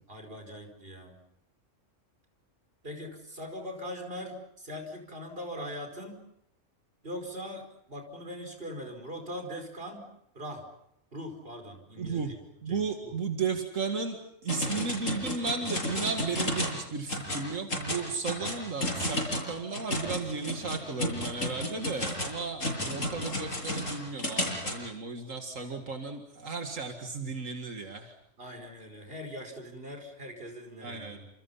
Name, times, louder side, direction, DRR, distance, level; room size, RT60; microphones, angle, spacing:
voice 1, 0.1-1.2 2.8-6.2 7.0-10.1 10.4-10.6 11.1-12.4 12.7-13.2 25.7-25.9 28.4-31.3, equal, 45° right, 4 dB, 5.3 m, -41 dB
voice 2, 12.0-12.3 12.6-14.2 14.4-28.1 30.8-31.2, right 4 dB, 85° right, 4 dB, 2.4 m, -34 dB
sound 1, 14.5-16.8 17.1-17.4 17.7-24.8, left 1 dB, 90° left, 7.8 m, -32 dB
30.0 x 28.0 x 5.7 m, 0.76 s
omnidirectional pair, 1.3 m